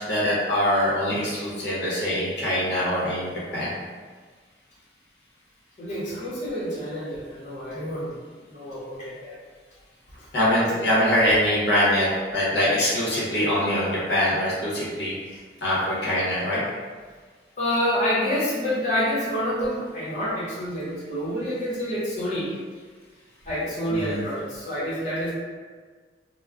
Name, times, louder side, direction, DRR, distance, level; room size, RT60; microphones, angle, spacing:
voice 1, 0.0-3.7 10.3-15.1 15.6-16.6 23.9-24.2, equal, 75° left, -7 dB, 0.8 m, -23 dB
voice 2, 5.8-8.1 8.5-9.3 17.6-22.5 23.5-25.3, equal, 40° left, -9 dB, 0.7 m, -28 dB
2.2 x 2.1 x 3.4 m, 1.5 s
head